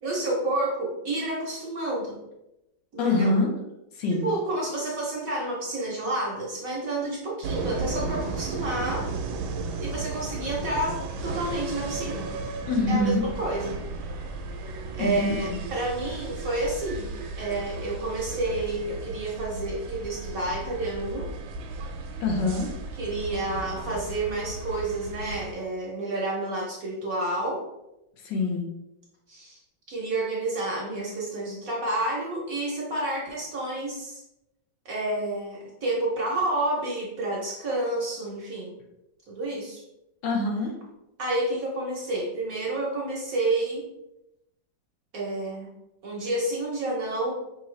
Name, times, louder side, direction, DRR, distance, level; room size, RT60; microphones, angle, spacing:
voice 1, 0.0-2.2 2.9-3.3 4.1-9.1 9.8-12.4 12.9-13.8 15.0-17.1 17.3-21.3 23.0-27.6 29.3-29.6 29.9-34.2 34.8-38.7 39.3-39.8 41.2-43.8 45.1-45.7 46.0-47.3, right 2 dB, 60° right, -3 dB, 1.0 m, -29 dB
voice 2, 3.0-3.5 3.9-4.3 12.7-13.2 15.0-15.6 22.2-22.7 28.2-28.7 40.2-40.7, left 2 dB, 70° left, 1 dB, 1.3 m, -25 dB
sound 1, 7.4-25.5, right 3 dB, 80° right, 1.3 m, -35 dB
5.2 x 2.6 x 3.1 m, 0.91 s
omnidirectional pair, 2.1 m